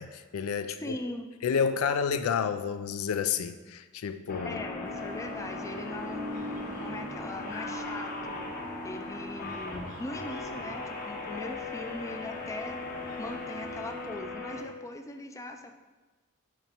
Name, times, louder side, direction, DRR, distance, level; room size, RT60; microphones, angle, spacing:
voice 1, 0.0-1.0 1.4-4.6, left 6 dB, 85° left, 10 dB, 0.4 m, -30 dB
voice 2, 0.8-1.3 4.4-8.4 8.8-12.8 13.2-15.7, left 2 dB, 15° left, 5 dB, 0.4 m, -40 dB
sound 1, 4.3-14.6, left 2 dB, 45° left, 1.0 m, -38 dB
sound 2, 4.3-10.0, right 1 dB, 80° right, 1.0 m, -44 dB
sound 3, 4.8-14.1, right 1 dB, 40° right, 0.7 m, -52 dB
8.7 x 2.9 x 4.4 m, 1.2 s
head